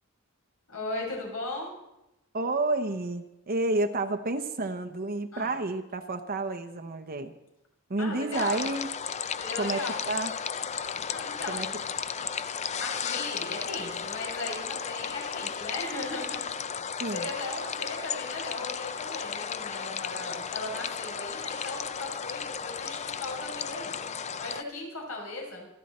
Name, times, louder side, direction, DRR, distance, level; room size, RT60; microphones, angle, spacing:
voice 1, 0.7-1.7 5.3-5.5 8.0-8.6 9.4-10.1 11.1-11.8 12.8-16.4 17.1-23.9 24.4-25.7, left 2 dB, 80° left, -1 dB, 6.3 m, -37 dB
voice 2, 2.3-7.3 7.9-8.9 9.6-10.3 11.5-11.7 17.0-17.3, right 2 dB, 45° right, 7 dB, 0.9 m, -30 dB
sound 1, 8.3-24.6, left 7 dB, 35° left, 0.5 m, -34 dB
27.0 x 11.0 x 4.3 m, 0.91 s
head